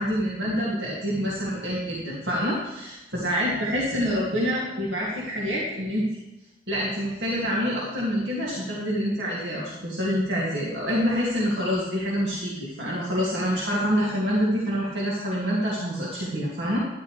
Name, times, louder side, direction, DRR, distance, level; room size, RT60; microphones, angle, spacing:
voice 1, 0.0-6.1 6.7-16.8, equal, 85° right, -5 dB, 2.3 m, -26 dB
12.0 x 11.0 x 3.3 m, 1.0 s
head